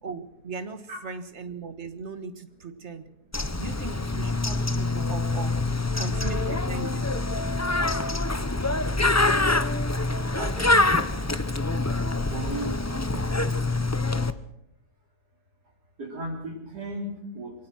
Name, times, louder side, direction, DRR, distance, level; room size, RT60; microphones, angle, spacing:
voice 1, 0.0-3.1 3.5-5.6 6.0-7.1, right 4 dB, 45° right, 10 dB, 1.7 m, -38 dB
Bird, 3.3-14.3, left 2 dB, 15° left, 0.5 m, -25 dB
voice 2, 5.9-6.3 10.3-10.9 12.3-12.8 13.1-13.3 16.0-17.5, right 1 dB, 85° right, -3 dB, 4.1 m, -35 dB
23.5 x 18.0 x 6.2 m, 0.80 s
omnidirectional pair, 1.7 m